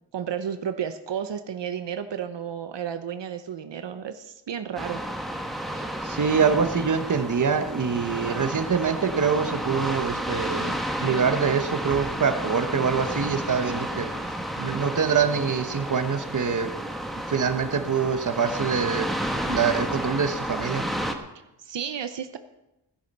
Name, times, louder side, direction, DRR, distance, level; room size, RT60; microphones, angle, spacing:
voice 1, 0.1-5.0 21.6-22.4, right 8 dB, 75° right, 9 dB, 0.9 m, -32 dB
sound 1, 4.8-21.1, equal, ahead, 1.2 m, -31 dB
voice 2, 5.8-14.1 14.6-16.7 17.3-19.1 19.5-20.9, right 6 dB, 45° right, 8 dB, 1.1 m, -25 dB
16.0 x 10.5 x 5.4 m, 0.92 s
wide cardioid pair, 165°, 43 cm